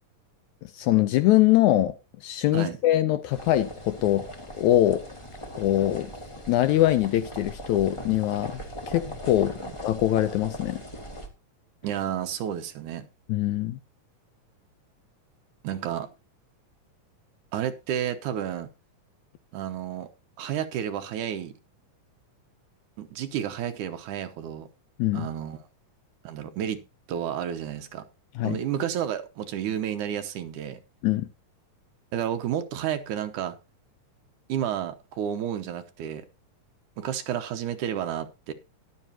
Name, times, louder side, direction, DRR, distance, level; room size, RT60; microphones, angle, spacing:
voice 1, 0.6-1.9 2.2-4.2 4.6-5.0 5.5-6.1 6.5-8.6 8.9-10.8 13.3-13.8 25.0-25.3 28.4-28.6 31.0-31.3, left 14 dB, 75° left, 1.8 m, -23 dB
sound 1, 3.3-11.3, equal, 30° left, 0.5 m, -40 dB
voice 2, 11.8-13.1 15.6-16.1 17.5-18.7 19.5-20.1 20.4-21.5 23.0-24.7 25.1-25.6 26.2-26.8 27.1-28.0 28.4-30.8 32.1-33.6 34.5-36.3 37.0-38.5, right 10 dB, 75° right, 2.3 m, -31 dB
14.5 x 11.0 x 2.8 m
omnidirectional pair, 3.8 m